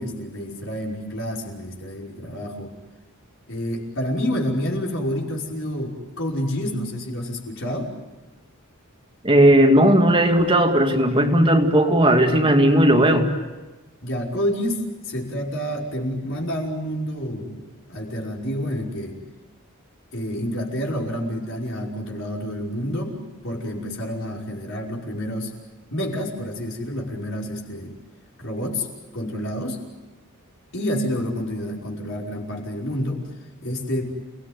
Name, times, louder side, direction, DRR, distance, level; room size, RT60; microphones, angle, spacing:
voice 1, 0.0-2.7 3.5-7.9 14.0-19.2 20.1-25.5 25.9-28.0 28.4-28.9 29.1-29.8 30.7-33.3 33.6-34.0, equal, 60° left, -1 dB, 5.4 m, -28 dB
voice 2, 9.2-13.3, right 1 dB, 25° right, 3 dB, 2.3 m, -16 dB
29.5 x 19.0 x 9.5 m, 1.2 s
head